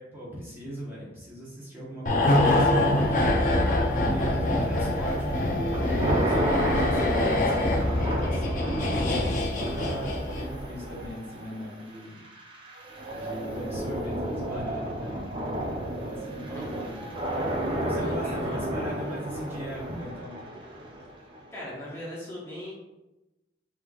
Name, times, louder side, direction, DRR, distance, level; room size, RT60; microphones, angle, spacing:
voice 1, 0.0-3.3 3.9-12.2 13.1-15.2 16.0-17.0 17.8-20.4, equal, 15° right, -7 dB, 1.1 m, -38 dB
sound 1, 2.1-10.6 10.9-11.0, left 1 dB, 45° left, 0.6 m, -25 dB
sound 2, 2.7-21.8, right 1 dB, 30° right, 0.7 m, -32 dB
voice 2, 17.9-18.7 19.0-19.2 21.5-22.7, left 1 dB, 15° left, -7 dB, 1.1 m, -39 dB
5.8 x 3.3 x 2.4 m, 0.98 s
head